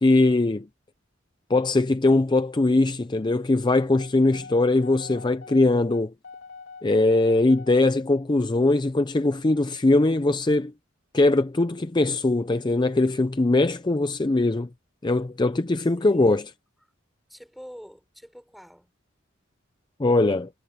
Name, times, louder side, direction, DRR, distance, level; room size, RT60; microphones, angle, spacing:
voice 1, 0.0-0.7 1.5-6.1 6.8-10.7 11.1-14.7 15.0-16.5 20.0-20.5, left 2 dB, 25° left, 0.5 m, -21 dB
sound 1, 3.9-7.9, left 4 dB, 70° left, 2.2 m, -44 dB
voice 2, 16.0-16.5 17.3-18.9, equal, ahead, 5.7 m, -46 dB
head